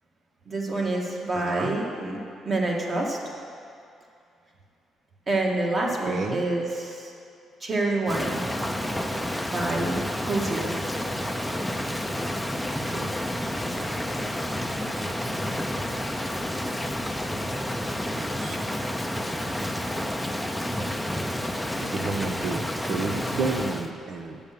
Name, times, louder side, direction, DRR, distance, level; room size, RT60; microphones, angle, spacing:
voice 1, 0.5-2.2 2.5-3.2 5.3-7.1 7.6-8.5 9.5-10.7, right 2 dB, 35° right, -1 dB, 1.8 m, -27 dB
voice 2, 1.3-1.7 6.1-6.4 12.9-13.1 18.0-18.8 19.5-19.7 21.8-24.4, right 4 dB, 60° right, 6 dB, 0.9 m, -32 dB
Rain, 8.1-23.9, left 1 dB, 5° left, 0.6 m, -30 dB
8.9 x 7.1 x 6.7 m, 2.5 s
cardioid pair, 90°, 0 cm